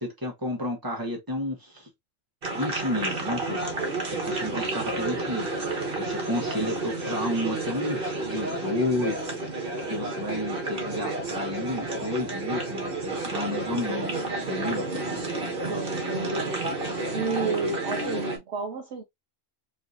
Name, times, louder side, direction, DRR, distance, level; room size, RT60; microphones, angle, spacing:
voice 1, 0.0-1.9 2.5-3.6 4.2-9.2 9.9-14.1 14.5-14.9, left 1 dB, 15° right, 1.5 m, -31 dB
sound 1, 2.4-18.4, right 2 dB, 45° right, 1.5 m, -31 dB
voice 2, 15.7-16.5 17.1-19.0, right 4 dB, 60° right, 0.9 m, -31 dB
4.5 x 3.4 x 2.6 m
omnidirectional pair, 1.3 m